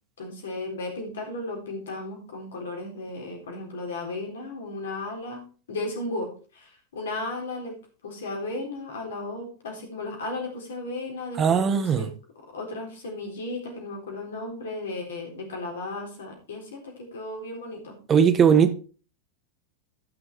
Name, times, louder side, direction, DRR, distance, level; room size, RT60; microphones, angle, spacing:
voice 1, 0.2-5.4 5.7-7.8 8.0-12.1 12.5-18.0, left 2 dB, 60° left, 4.0 m, -35 dB
voice 2, 11.4-12.1 18.1-18.7, right 7 dB, 25° right, 1.2 m, -19 dB
13.0 x 6.1 x 4.7 m
figure-of-eight pair, 90°, 0 cm